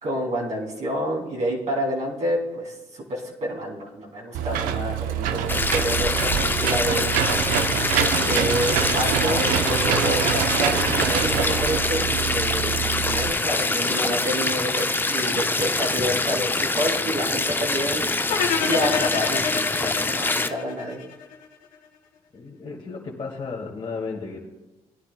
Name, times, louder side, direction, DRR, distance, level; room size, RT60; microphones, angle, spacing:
voice 1, 0.0-7.1 8.1-18.2 18.6-21.0, equal, 55° right, -3 dB, 3.0 m, -28 dB
Engine / Mechanisms, 4.3-13.3, right 9 dB, 85° right, 0.7 m, -25 dB
sound 1, 5.5-20.5, left 2 dB, 15° left, 0.5 m, -25 dB
sound 2, 18.3-21.4, left 6 dB, 80° left, 1.6 m, -27 dB
voice 2, 22.3-24.5, left 4 dB, 40° left, -5 dB, 1.9 m, -34 dB
19.0 x 9.9 x 2.2 m, 1.1 s
supercardioid pair, 70°, 14 cm